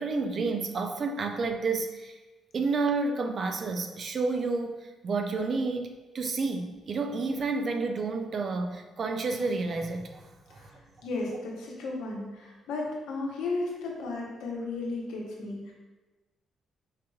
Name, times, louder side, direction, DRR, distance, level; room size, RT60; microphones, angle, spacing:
voice 1, 0.0-2.2 2.5-10.7, right 3 dB, 50° right, 5 dB, 0.4 m, -30 dB
voice 2, 11.0-15.7, left 3 dB, 90° left, -2 dB, 0.8 m, -34 dB
4.8 x 2.9 x 2.3 m, 1.2 s
cardioid pair, 90°, 0 cm